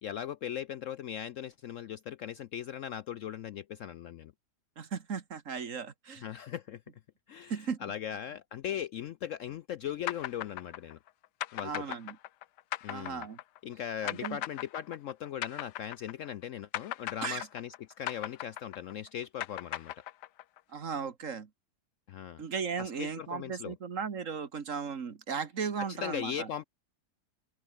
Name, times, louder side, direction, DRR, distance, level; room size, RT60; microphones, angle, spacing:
voice 1, 0.0-4.3 6.2-6.8 7.3-11.0 11.5-11.8 12.8-13.2 13.6-20.0 22.1-22.4 22.8-23.7 25.9-26.6, left 9 dB, 65° left, 0.8 m, -39 dB
voice 2, 4.8-6.3 7.5-7.8 11.6-12.2 12.9-13.4 14.0-14.4 17.2-17.5 20.7-21.5 22.4-26.5, right 6 dB, 50° right, 1.8 m, -36 dB
sound 1, 10.1-16.4 16.7-20.6, left 14 dB, 90° left, 1.3 m, -38 dB
open air
omnidirectional pair, 1.7 m